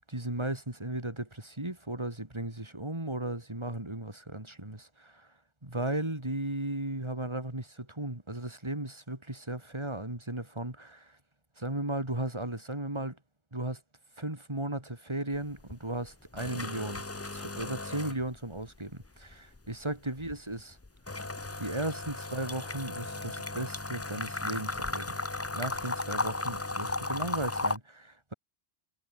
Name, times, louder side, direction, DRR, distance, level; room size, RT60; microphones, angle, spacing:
voice 1, 0.1-5.3 5.6-11.2 11.6-13.2 13.5-13.8 14.2-20.8 21.6-25.2 25.5-28.3, right 1 dB, 25° right, 3.8 m, -36 dB
sound 1, 15.3-15.8 16.1-18.7 19.0-27.8, left 2 dB, 15° left, 0.6 m, -35 dB
omnidirectional pair, 1.2 m